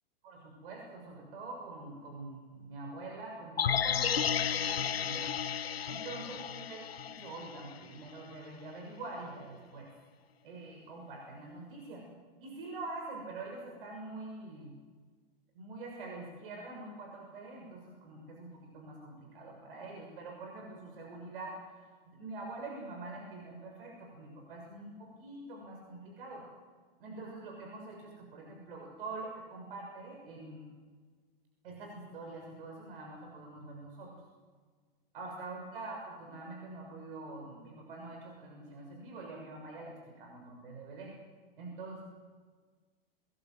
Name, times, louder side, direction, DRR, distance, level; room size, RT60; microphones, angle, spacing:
voice 1, 0.2-6.8 7.1-9.9 10.4-12.1 12.4-14.7 15.5-21.6 22.1-26.5 27.0-30.7 31.6-34.1 35.1-41.2 41.6-42.0, right 2 dB, 65° right, 1 dB, 6.5 m, -45 dB
sound 1, 3.6-7.8 8.1-8.2, left 8 dB, 85° left, 0.9 m, -33 dB
26.0 x 21.5 x 7.9 m, 1.5 s
hypercardioid pair, 110°, 29 cm